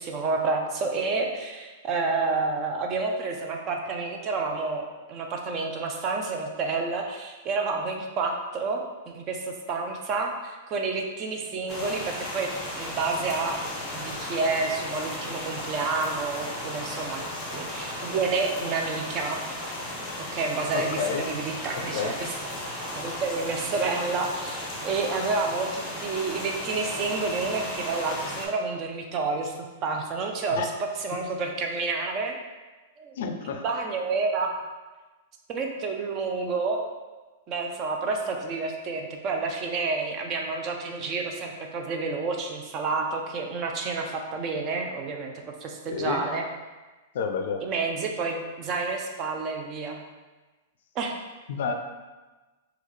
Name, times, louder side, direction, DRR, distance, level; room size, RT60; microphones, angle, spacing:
voice 1, 0.0-12.5 12.8-13.6 13.9-17.2 17.5-19.4 20.3-22.3 23.0-29.5 29.8-32.4 33.0-33.2 33.6-34.6 35.5-36.9 37.5-46.4 47.6-50.0 51.0-51.2, right 4 dB, 30° right, 2 dB, 0.4 m, -29 dB
sound 1, 11.7-28.5, left 1 dB, 20° left, 0.7 m, -35 dB
voice 2, 20.7-21.3 21.8-22.1 30.5-30.7 33.2-33.6 45.9-46.2 47.1-47.6 51.5-51.7, left 6 dB, 65° left, 5 dB, 0.3 m, -30 dB
3.6 x 2.3 x 3.1 m, 1.2 s
supercardioid pair, 160°, 0 cm